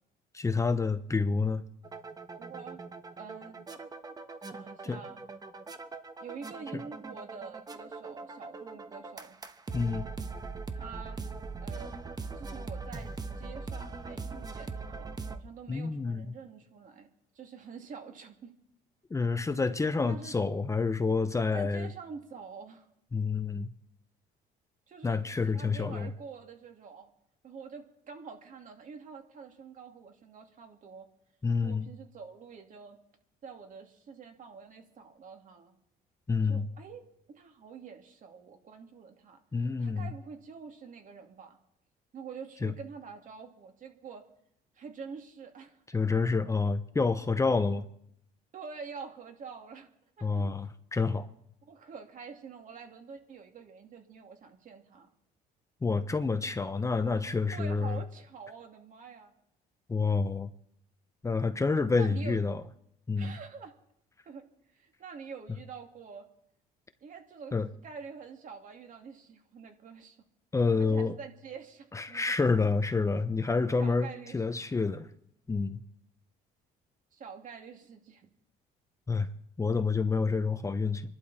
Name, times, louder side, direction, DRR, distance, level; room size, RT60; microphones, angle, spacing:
voice 1, 0.3-1.6 4.8-5.0 6.7-6.8 9.7-10.1 15.7-16.3 19.1-21.9 23.1-23.7 25.0-26.1 31.4-31.9 36.3-36.7 39.5-40.1 42.6-42.7 45.9-47.9 50.2-51.3 55.8-58.0 59.9-60.5 61.2-62.6 63.1-63.4 67.5-67.7 70.5-71.2 71.9-75.1 75.5-75.8 79.1-79.3 79.6-81.0, left 4 dB, 20° left, 0.8 m, -28 dB
sound 1, 1.8-15.4, right 4 dB, 25° right, 1.2 m, -41 dB
voice 2, 2.4-2.8 3.2-3.6 4.5-5.2 6.2-9.4 10.8-11.2 11.6-11.9 12.3-17.1 17.3-18.5 20.1-20.3 21.5-22.9 24.9-27.1 27.4-31.1 31.6-33.0 33.4-35.7 36.5-37.0 37.3-39.4 39.8-41.6 42.1-44.2 44.7-46.0 48.5-49.9 50.2-50.6 51.6-55.1 57.5-59.3 61.9-62.4 63.2-63.7 64.3-64.4 64.7-66.2 67.0-67.5 67.8-70.2 70.8-72.2 73.8-74.9 77.1-78.3, right 5 dB, 50° right, 2.7 m, -46 dB
26.5 x 11.5 x 4.3 m
cardioid pair, 110°, 17 cm